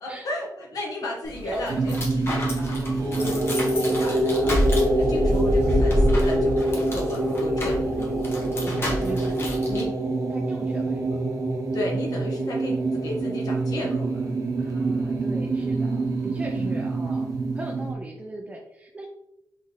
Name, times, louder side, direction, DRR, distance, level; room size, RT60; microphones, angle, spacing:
voice 1, 0.0-7.9 9.0-9.3 9.7-9.9 11.7-14.2 16.6-16.8, left 1 dB, 70° left, -1 dB, 1.4 m, -34 dB
sound 1, 1.2-9.8, left 1 dB, 40° left, 1.3 m, -28 dB
voice 2, 1.4-2.1 7.9-8.5 8.9-9.9 10.3-11.2 14.6-19.1, right 1 dB, 20° right, 0 dB, 0.5 m, -39 dB
sound 2, 1.7-17.9, right 2 dB, 60° right, 0.8 m, -25 dB
4.2 x 3.8 x 3.1 m, 0.83 s
wide cardioid pair, 135°, 6 cm